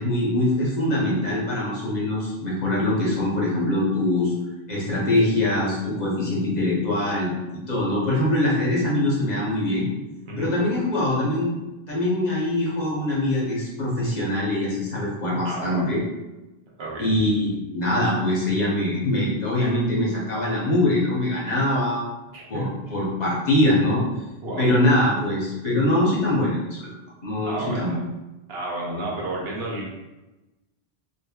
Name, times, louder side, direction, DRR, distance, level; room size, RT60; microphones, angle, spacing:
voice 1, 0.0-4.3 4.7-9.9 10.4-11.5 11.9-16.0 17.0-22.0 22.5-24.0 24.6-26.9 27.2-27.9, left 1 dB, 45° left, -5 dB, 0.8 m, -23 dB
voice 2, 15.4-15.8 16.8-17.2 22.3-22.7 24.4-24.6 27.4-28.0 28.5-29.9, right 1 dB, 75° right, -3 dB, 1.0 m, -31 dB
3.4 x 2.2 x 2.2 m, 1.0 s
omnidirectional pair, 1.1 m